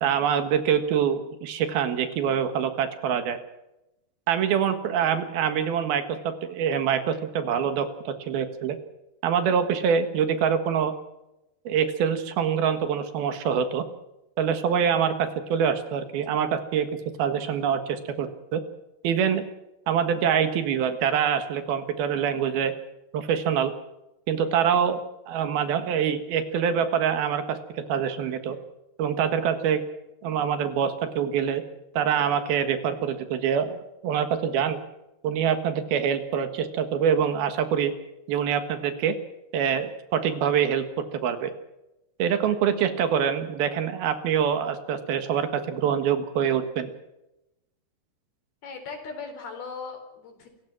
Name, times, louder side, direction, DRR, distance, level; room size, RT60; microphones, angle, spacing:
voice 1, 0.0-3.4 4.3-8.8 9.2-10.9 11.7-13.8 14.4-16.9 17.2-18.6 19.0-19.4 19.9-22.7 23.1-23.7 24.3-25.0 25.3-27.6 27.9-28.6 29.0-29.8 30.2-31.6 31.9-34.8 35.2-37.9 38.3-39.1 39.5-40.8 41.1-41.5 42.2-46.9, right 8 dB, 70° right, 9 dB, 3.3 m, -25 dB
voice 2, 48.6-50.5, left 5 dB, 70° left, 5 dB, 6.1 m, -38 dB
28.5 x 16.0 x 6.1 m, 0.91 s
omnidirectional pair, 4.6 m